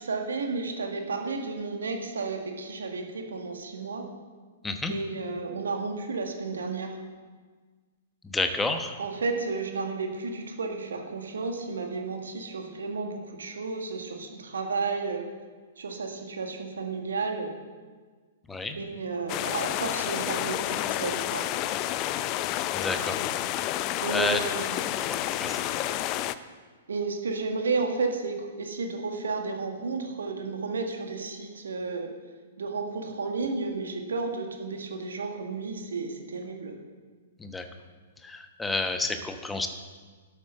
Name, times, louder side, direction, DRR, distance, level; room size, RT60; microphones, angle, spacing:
voice 1, 0.0-4.1 4.9-7.0 9.0-15.3 15.8-17.5 18.8-21.5 24.0-24.8 26.9-32.1 32.6-36.8, right 4 dB, 65° right, 3 dB, 2.0 m, -32 dB
voice 2, 8.3-9.0 18.5-18.8 22.7-23.2 24.1-24.4 25.1-25.6 37.4-37.6 38.2-39.7, left 3 dB, 10° left, 7 dB, 1.1 m, -29 dB
sound 1, 19.3-26.3, left 13 dB, 35° left, 0.5 m, -30 dB
12.0 x 8.2 x 6.8 m, 1.5 s
figure-of-eight pair, 110°, 0 cm